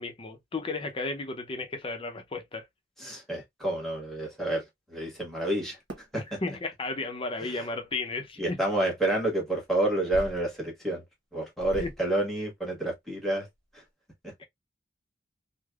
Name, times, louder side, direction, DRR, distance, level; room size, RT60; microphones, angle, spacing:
voice 1, 0.0-2.6 6.2-8.6 11.8-11.9 14.4-14.5, left 3 dB, 30° left, 0.6 m, -34 dB
voice 2, 3.0-6.4 7.4-7.7 8.4-11.0 11.3-13.5 13.7-13.8 14.2-14.3, right 1 dB, ahead, 1.2 m, -29 dB
sound 1, 5.9-6.1 7.3-7.4 8.7-8.9 10.1-10.6 11.0-11.1 11.6-12.2 12.8-12.9 13.1-13.3 13.5-13.9, right 1 dB, 75° right, 1.0 m, -41 dB
3.2 x 2.1 x 2.3 m
head